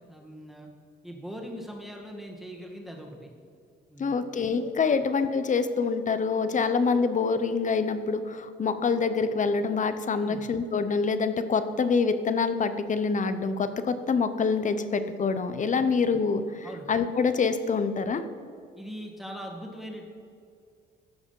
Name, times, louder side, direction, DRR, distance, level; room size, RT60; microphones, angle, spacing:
voice 1, 0.1-0.7 1.0-3.3 3.9-4.3 4.9-5.0 10.2-10.4 15.8-15.9 16.6-16.9 18.8-20.1, equal, ahead, 1 dB, 1.8 m, -41 dB
voice 2, 4.0-18.2, left 5 dB, 40° left, 11 dB, 0.7 m, -26 dB
14.0 x 4.9 x 5.5 m, 2.3 s
cardioid pair, 90°, 20 cm